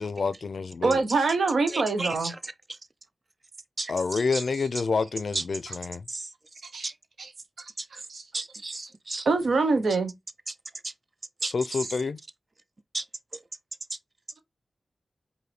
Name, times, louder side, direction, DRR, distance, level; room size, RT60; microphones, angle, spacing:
voice 1, 0.0-1.0 3.9-6.0 11.5-12.2, left 4 dB, 70° left, 0.4 m, -28 dB
voice 2, 0.8-2.3 6.7-6.9 8.1-8.2 9.3-10.1, right 3 dB, 80° right, 0.8 m, -24 dB
voice 3, 1.7-2.8 3.8-4.4 5.3-5.4 6.1-6.3 6.8-6.9 7.8-8.1 8.3-9.3 10.5-10.6 10.8-10.9 11.4-11.9 12.9-13.1 13.3-13.4 13.9-14.0, right 2 dB, 45° right, 0.5 m, -34 dB
4.9 x 2.6 x 3.1 m
cardioid pair, 40°, 0 cm